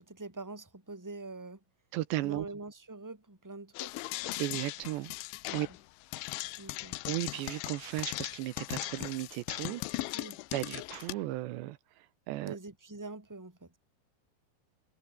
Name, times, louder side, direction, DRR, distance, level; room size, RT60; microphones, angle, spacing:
voice 1, 0.0-1.6 2.2-4.1 5.5-5.6 6.6-7.0 10.1-10.4 12.5-13.7, right 3 dB, 5° right, 3.0 m, -45 dB
voice 2, 1.9-2.5 4.4-5.1 5.5-5.7 6.4-6.5 7.1-10.2 10.5-12.6, right 17 dB, 80° right, 3.0 m, -36 dB
sound 1, 3.8-11.1, left 20 dB, 90° left, 3.2 m, -38 dB
omnidirectional pair, 5.2 m